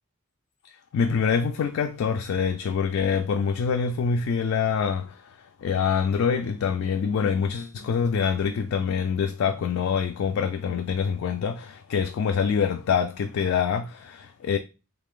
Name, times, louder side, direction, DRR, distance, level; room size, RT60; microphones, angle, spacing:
voice 1, 0.9-14.6, left 6 dB, 65° left, 0.3 m, -25 dB
3.3 x 2.4 x 3.6 m
head